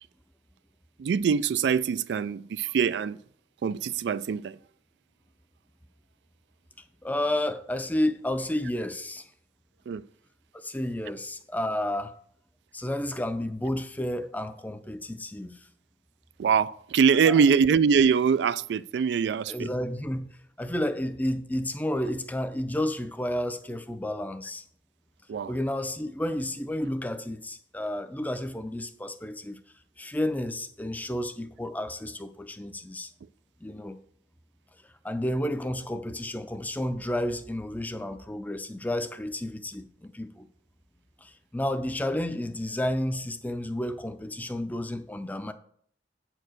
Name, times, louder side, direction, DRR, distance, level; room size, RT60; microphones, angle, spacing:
voice 1, 1.0-3.2 3.6-4.6 9.9-10.0 16.4-19.7 25.3-25.5, right 6 dB, 75° right, 0.3 m, -23 dB
voice 2, 7.0-9.3 10.5-12.1 12.7-15.7 17.2-17.3 19.5-20.3 20.6-24.6 25.5-29.6 30.0-33.1 33.6-34.0 35.0-40.5 41.2-45.5, left 1 dB, 10° left, 0.5 m, -31 dB
8.3 x 4.6 x 6.4 m
head